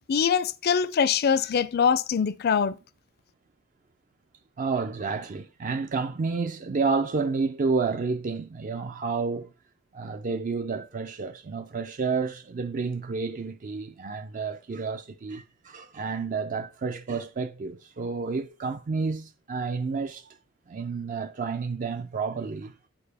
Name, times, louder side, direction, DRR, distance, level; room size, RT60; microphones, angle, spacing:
voice 1, 0.1-2.8, left 6 dB, 50° left, 0.4 m, -23 dB
voice 2, 4.6-9.5 9.9-20.3 20.7-22.8, right 4 dB, 40° right, 0.4 m, -30 dB
8.7 x 4.7 x 3.4 m
head